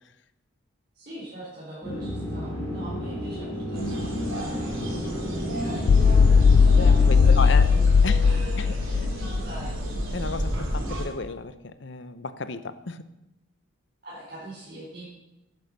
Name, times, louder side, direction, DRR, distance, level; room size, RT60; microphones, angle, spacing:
voice 1, 0.9-4.8 5.5-9.7 14.0-15.0, right 1 dB, 50° right, -8 dB, 4.2 m, -42 dB
sound 1, 1.8-7.4, equal, 15° left, 5.0 m, -32 dB
sound 2, 3.7-11.0, right 1 dB, 75° right, 4.1 m, -33 dB
sound 3, 5.9-10.1, left 5 dB, 80° left, 0.4 m, -18 dB
voice 2, 6.7-7.6 8.0-8.2 8.6-9.1 10.1-13.1, left 4 dB, 60° left, 13 dB, 0.7 m, -33 dB
11.0 x 9.7 x 6.6 m, 0.94 s
head